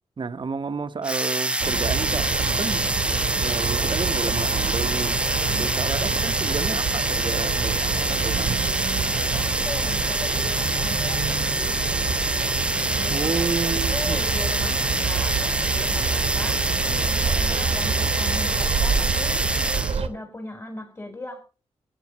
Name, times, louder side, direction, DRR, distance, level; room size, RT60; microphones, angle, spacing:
voice 1, 0.2-2.8 3.4-5.2 5.6-8.6 13.1-14.3, right 4 dB, 45° right, 1.0 m, -31 dB
sound 1, 1.0-20.0, right 1 dB, 10° right, 0.7 m, -26 dB
sound 2, 1.6-20.1, right 6 dB, 65° right, 1.2 m, -27 dB
voice 2, 5.3-5.7 9.3-11.8 12.9-19.4 20.0-21.4, left 2 dB, 20° left, 4.4 m, -38 dB
23.0 x 9.0 x 3.1 m
cardioid pair, 60°, 11 cm